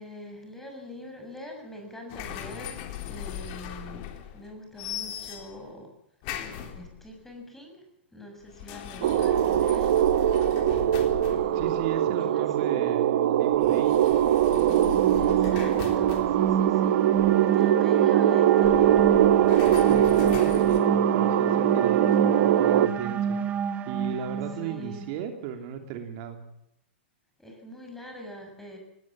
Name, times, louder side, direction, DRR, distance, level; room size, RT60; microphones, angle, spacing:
voice 1, 0.0-4.0 4.3-5.9 6.4-7.9 8.1-10.9 11.2-11.8 12.2-12.7 15.1-19.1 24.6-25.1 27.4-28.8, left 1 dB, 5° left, 2 dB, 6.9 m, -44 dB
sound 1, 2.1-4.5 4.8-5.7 6.2-7.2 8.4-12.0 13.5-17.5 18.5-20.8, left 10 dB, 45° left, 3.6 m, -39 dB
sound 2, 9.0-22.9, right 11 dB, 60° right, 1.3 m, -22 dB
voice 2, 11.5-14.2 19.9-23.5 23.9-26.5, right 8 dB, 45° right, 5 dB, 3.0 m, -35 dB
sound 3, 14.6-25.1, right 7 dB, 25° right, 1.9 m, -28 dB
19.5 x 18.0 x 7.4 m, 0.83 s
hypercardioid pair, 135°, 6 cm